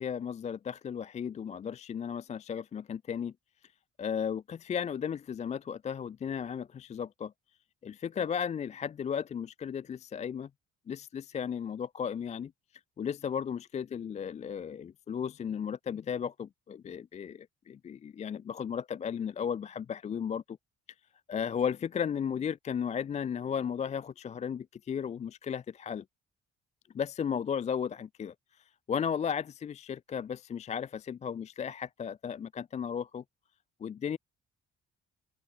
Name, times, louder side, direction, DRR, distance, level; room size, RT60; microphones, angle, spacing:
voice 1, 0.0-3.3 4.0-7.3 7.8-10.5 10.9-12.5 13.0-20.6 21.3-26.0 26.9-28.3 28.9-33.2 33.8-34.2, left 7 dB, 20° left, 0.3 m, -35 dB
open air
figure-of-eight pair, 40°, 34 cm